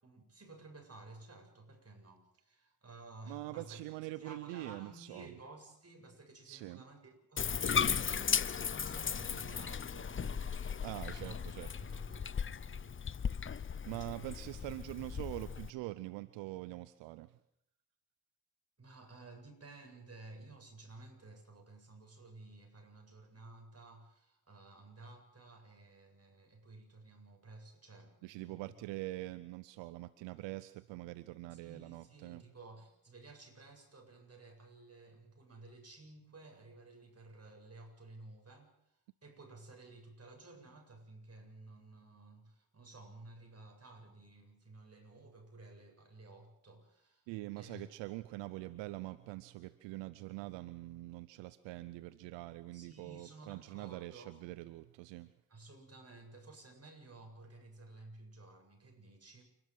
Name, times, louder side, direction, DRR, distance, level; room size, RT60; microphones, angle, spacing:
voice 1, 0.0-3.9 4.1-11.4 11.8-13.0 18.8-28.7 31.5-38.7 39.2-47.3 47.5-47.8 52.7-54.4 55.5-59.4, right 2 dB, 35° right, 3 dB, 7.9 m, -54 dB
voice 2, 3.3-5.3 6.5-6.8 10.8-11.7 13.6-17.3 28.2-32.4 47.3-55.3, right 18 dB, 80° right, 16 dB, 0.7 m, -44 dB
Bathtub (filling or washing), 7.4-15.7, left 7 dB, 30° left, 0.7 m, -36 dB
29.0 x 12.5 x 7.8 m, 0.74 s
hypercardioid pair, 40°, 43 cm